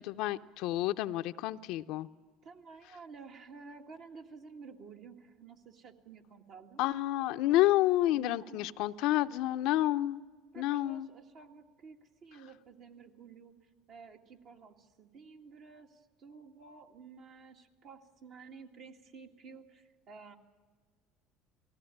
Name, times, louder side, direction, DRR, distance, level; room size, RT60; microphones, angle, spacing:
voice 1, 0.0-2.1 6.8-10.2 10.6-11.1, left 15 dB, 70° left, 11 dB, 0.6 m, -29 dB
voice 2, 2.4-6.8 8.1-8.6 10.5-13.5 13.9-20.4, right 5 dB, 60° right, 3 dB, 2.0 m, -52 dB
19.5 x 15.5 x 9.9 m, 1.5 s
supercardioid pair, 90°, 0 cm